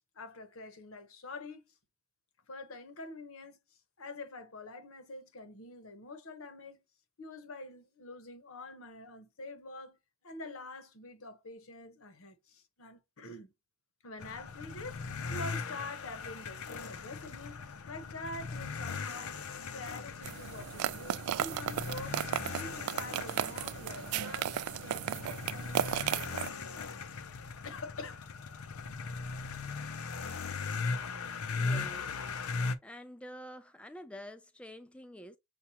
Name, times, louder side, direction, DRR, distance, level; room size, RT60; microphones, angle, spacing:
voice 1, 0.1-1.6 2.5-3.6 4.0-6.8 7.2-10.0 10.2-13.5 14.0-19.4 19.7-26.9 27.6-28.3, left 2 dB, 70° left, 1.0 m, -46 dB
sound 1, 14.2-32.7, left 4 dB, 90° left, 0.6 m, -39 dB
sound 2, 20.2-26.5, right 10 dB, 85° right, 0.3 m, -35 dB
voice 2, 31.5-35.4, equal, 5° left, 0.3 m, -48 dB
7.0 x 2.4 x 2.8 m
head